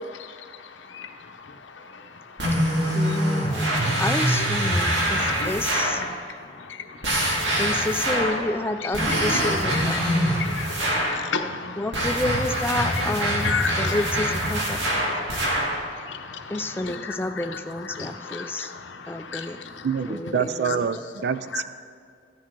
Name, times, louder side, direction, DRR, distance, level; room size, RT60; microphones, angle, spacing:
voice 1, 0.0-3.2 3.6-4.0 5.2-5.5 6.1-7.6 8.8-11.9 13.4-14.0 14.8-19.9 20.6-20.8 21.5-21.6, left 5 dB, 85° left, 6 dB, 0.8 m, -35 dB
sound 1, 2.4-6.0 7.0-8.4 8.9-11.2 11.9-15.8, equal, 85° right, 2.0 m, -24 dB
voice 2, 2.9-3.7 4.0-6.0 7.6-10.7 11.8-14.8 16.5-18.7 19.1-19.6 20.1-20.9, left 2 dB, 10° left, 7 dB, 0.3 m, -30 dB
voice 3, 19.8-21.6, right 7 dB, 60° right, 14 dB, 0.4 m, -26 dB
14.0 x 10.0 x 3.7 m, 2.2 s
head